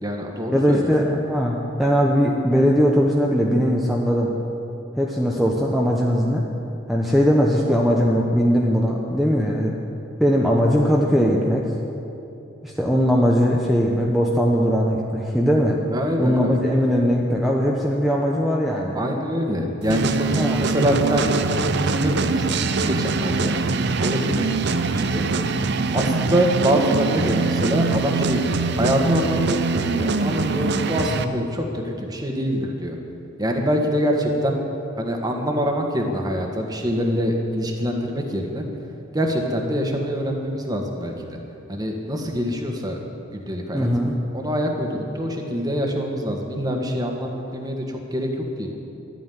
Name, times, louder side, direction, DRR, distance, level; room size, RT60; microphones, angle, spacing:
voice 1, 0.0-0.9 15.9-16.6 18.9-21.4 21.7-23.5 24.0-25.2 25.9-33.0 33.4-34.6 35.0-38.6 39.1-41.4 41.7-43.0 43.3-43.9 44.3-48.7, equal, 20° right, 2 dB, 1.7 m, -25 dB
voice 2, 0.5-4.3 5.0-6.4 6.9-9.7 10.2-11.6 12.6-15.8 16.2-19.0 20.3-20.6 31.2-31.3 43.7-44.2, equal, ahead, -3 dB, 1.0 m, -20 dB
sound 1, 19.9-31.2, right 4 dB, 60° right, 0.6 m, -23 dB
12.5 x 9.2 x 9.6 m, 2.8 s
head